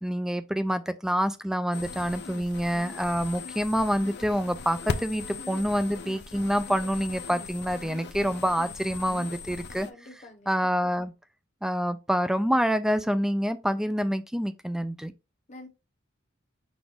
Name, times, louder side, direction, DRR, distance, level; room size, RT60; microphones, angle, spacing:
voice 1, 0.0-9.9 10.5-11.1 11.6-15.1, equal, 5° right, 0.3 m, -27 dB
sound 1, 1.7-9.9, left 4 dB, 55° left, 0.5 m, -38 dB
voice 2, 5.2-5.6 9.8-10.6 15.5-15.7, left 2 dB, 35° left, 1.0 m, -47 dB
6.0 x 2.5 x 3.4 m
head